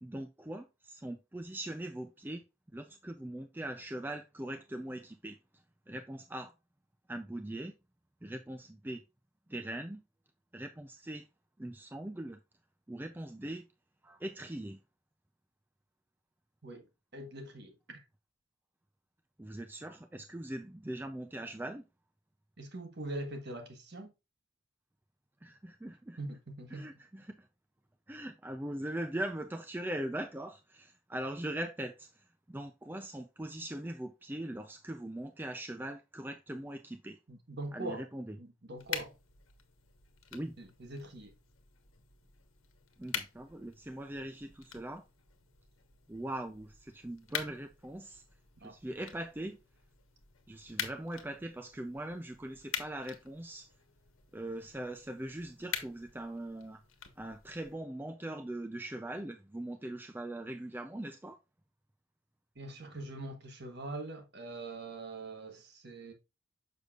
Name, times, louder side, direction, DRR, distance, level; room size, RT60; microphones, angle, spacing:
voice 1, 0.0-2.4 2.7-5.4 5.9-6.5 7.1-7.7 8.2-9.0 9.5-10.0 10.5-11.3 11.6-12.4 12.9-13.7 14.0-14.8 19.4-21.8 25.4-26.2 26.7-27.5 28.1-37.2 37.7-38.4 40.3-40.6 43.0-45.0 46.1-48.2 48.6-49.6 50.5-53.7 54.3-56.8 57.2-61.4, right 1 dB, 10° right, 0.4 m, -41 dB
voice 2, 17.1-18.0 22.6-24.1 26.2-26.9 37.3-38.1 38.4-39.1 40.6-41.3 48.6-48.8 62.5-66.1, right 2 dB, 50° right, 1.4 m, -43 dB
sound 1, 38.8-57.7, left 8 dB, 75° left, 1.2 m, -46 dB
6.6 x 6.6 x 2.4 m
head